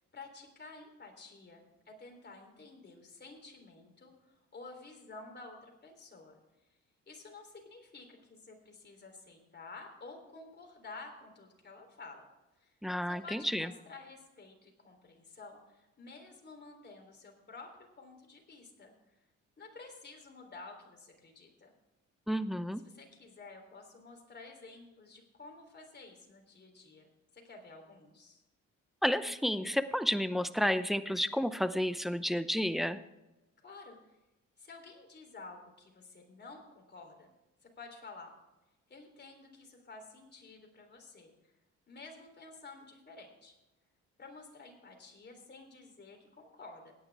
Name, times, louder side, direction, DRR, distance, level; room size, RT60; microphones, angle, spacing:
voice 1, 0.1-6.4 7.1-12.3 12.6-12.7 13.1-18.9 19.6-21.7 22.8-28.4 33.6-34.2 34.6-37.3 37.6-38.3 38.9-41.5 41.9-43.5 44.2-46.9, left 3 dB, 35° left, 3 dB, 3.5 m, -51 dB
voice 2, 12.8-13.7 22.3-22.8 29.0-33.0, equal, ahead, 11 dB, 0.7 m, -31 dB
16.5 x 9.7 x 3.5 m, 1.0 s
cardioid pair, 90°, 30 cm